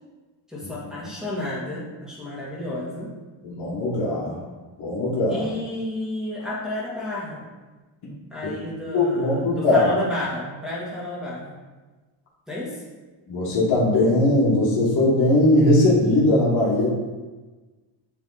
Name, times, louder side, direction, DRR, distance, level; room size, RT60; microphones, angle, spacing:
voice 1, 0.5-3.1 5.3-7.4 8.3-11.5 12.5-12.8, left 1 dB, ahead, -7 dB, 2.0 m, -31 dB
voice 2, 3.4-4.4 4.8-5.5 8.9-9.9 13.3-16.9, left 1 dB, 50° left, -7 dB, 1.7 m, -20 dB
8.4 x 3.5 x 4.1 m, 1.3 s
cardioid pair, 145°, 48 cm